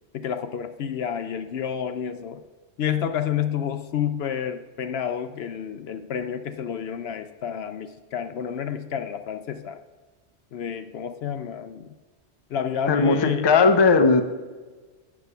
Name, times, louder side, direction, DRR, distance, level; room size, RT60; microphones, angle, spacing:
voice 1, 0.1-2.4 2.8-9.8 10.5-11.9 12.5-13.5, left 8 dB, 70° left, 9 dB, 0.8 m, -29 dB
voice 2, 12.9-14.2, left 4 dB, 30° left, 7 dB, 0.6 m, -17 dB
8.4 x 6.2 x 6.7 m, 1.3 s
omnidirectional pair, 1.2 m